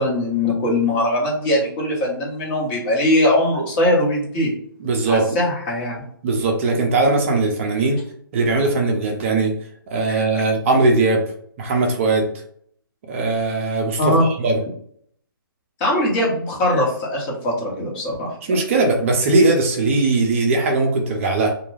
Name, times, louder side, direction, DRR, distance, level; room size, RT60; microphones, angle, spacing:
voice 1, 0.0-4.5 5.1-6.0 10.1-10.4 14.0-14.3 15.8-18.3, left 1 dB, 25° left, -3 dB, 0.9 m, -21 dB
voice 2, 4.8-5.4 6.2-8.0 8.3-9.5 9.9-11.2 11.6-12.3 13.1-14.6 18.4-21.5, right 3 dB, 35° right, 1 dB, 0.5 m, -19 dB
2.3 x 2.1 x 3.2 m, 0.63 s
hypercardioid pair, 145°, 12 cm